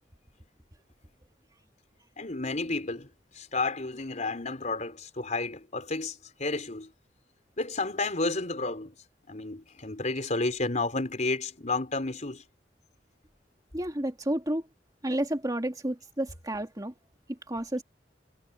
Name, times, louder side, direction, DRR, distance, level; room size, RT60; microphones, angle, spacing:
voice 1, 2.2-3.1 3.3-6.9 7.6-8.9 9.3-12.4, left 3 dB, 45° left, 4.4 m, -31 dB
voice 2, 13.7-14.6 15.0-16.9 17.3-17.8, right 1 dB, 20° right, 2.1 m, -31 dB
head